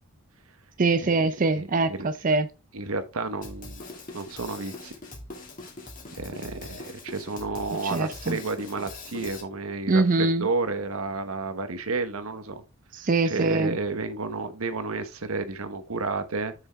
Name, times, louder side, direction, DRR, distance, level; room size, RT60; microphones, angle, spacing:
voice 1, 0.8-2.5 7.8-8.4 9.9-10.5 12.9-13.8, right 3 dB, 40° right, 0.6 m, -23 dB
voice 2, 1.6-2.1 2.7-3.8 4.1-4.9 6.2-12.6 13.2-16.5, right 3 dB, 80° right, 1.1 m, -31 dB
Drum kit, 3.4-9.4, left 2 dB, 40° left, 2.3 m, -42 dB
7.4 x 6.4 x 3.5 m
head